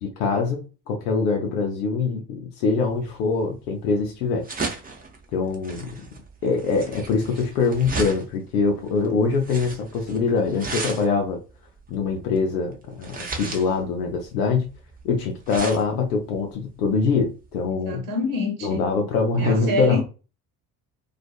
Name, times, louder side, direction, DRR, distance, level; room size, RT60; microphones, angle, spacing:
voice 1, 0.0-4.4 5.3-5.9 6.4-11.4 11.9-14.7 15.0-18.0 18.6-20.0, left 4 dB, 80° left, 0.5 m, -23 dB
sound 1, 2.9-17.7, right 3 dB, 20° right, 0.6 m, -36 dB
voice 2, 17.7-18.8 19.4-20.0, left 2 dB, 45° right, 1.0 m, -27 dB
2.4 x 2.3 x 2.3 m
figure-of-eight pair, 50°, 46 cm